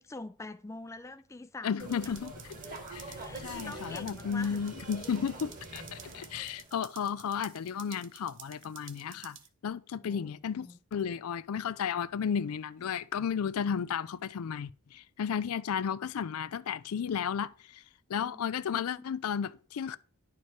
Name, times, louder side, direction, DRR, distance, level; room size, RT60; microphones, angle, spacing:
voice 1, 0.0-2.2 3.1-4.6 9.9-10.3 10.6-10.8 18.2-18.4 18.7-19.1, left 2 dB, 15° left, 0.3 m, -45 dB
voice 2, 1.6-2.3 2.9-9.4 9.6-17.8 18.1-20.0, left 7 dB, 85° left, 0.4 m, -33 dB
sound 1, 1.8-6.8, right 2 dB, 40° right, 1.6 m, -45 dB
sound 2, 1.8-9.5, right 10 dB, 60° right, 0.8 m, -52 dB
10.5 x 4.6 x 4.6 m
head